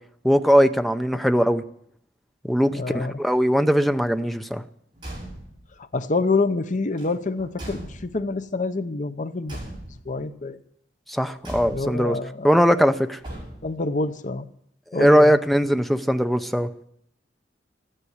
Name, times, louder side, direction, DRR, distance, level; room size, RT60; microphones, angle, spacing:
voice 1, 0.2-1.6 2.4-4.6 11.1-12.2 12.4-13.2 14.9-16.7, equal, ahead, 9 dB, 0.6 m, -20 dB
voice 2, 2.7-3.1 5.9-9.6 10.1-10.6 11.7-12.6 13.6-14.5 14.9-15.3, left 3 dB, 40° left, 11 dB, 0.8 m, -26 dB
Car / Truck / Slam, 4.9-5.7 6.9-8.4 9.4-10.2 11.4-12.1 13.2-13.9, right 1 dB, 25° right, 6.4 m, -39 dB
13.5 x 10.0 x 9.4 m, 0.72 s
head